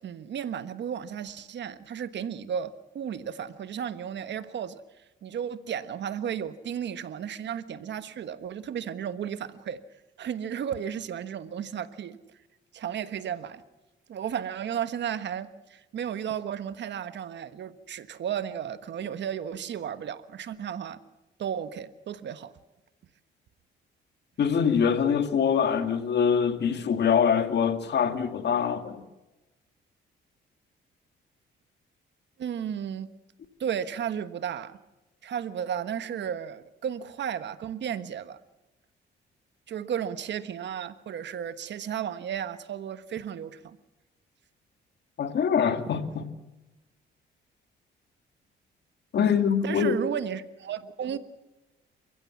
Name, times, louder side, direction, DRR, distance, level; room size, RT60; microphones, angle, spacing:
voice 1, 0.0-4.8 5.2-9.8 10.2-12.2 12.7-13.6 14.1-21.0 21.4-22.5 32.4-33.1 33.6-34.8 35.2-38.4 39.7-43.8 49.1-51.2, right 8 dB, 65° right, 1.4 m, -34 dB
voice 2, 24.4-29.0 45.2-46.3 49.1-50.0, left 7 dB, 60° left, 2.1 m, -24 dB
28.5 x 15.5 x 7.3 m
cardioid pair, 90°, 20 cm